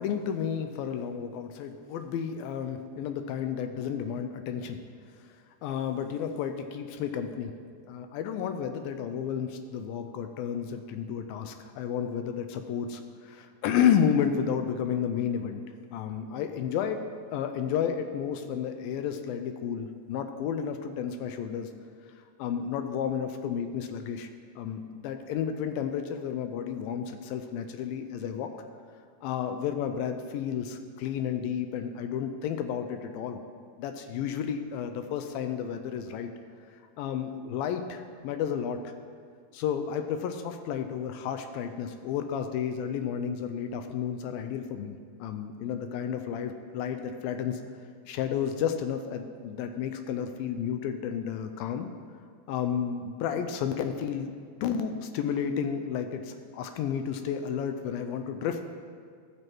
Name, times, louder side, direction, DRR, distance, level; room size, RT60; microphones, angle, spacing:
voice 1, 0.0-4.8 5.6-7.5 7.9-15.6 15.9-17.0 17.3-21.7 22.4-24.3 24.6-28.5 29.2-33.4 33.8-36.3 37.0-38.9 39.5-47.6 48.1-51.9 52.5-54.3 54.6-58.6, left 8 dB, 85° left, 7 dB, 2.3 m, -31 dB
14.5 x 6.5 x 4.5 m, 2.1 s
omnidirectional pair, 4.2 m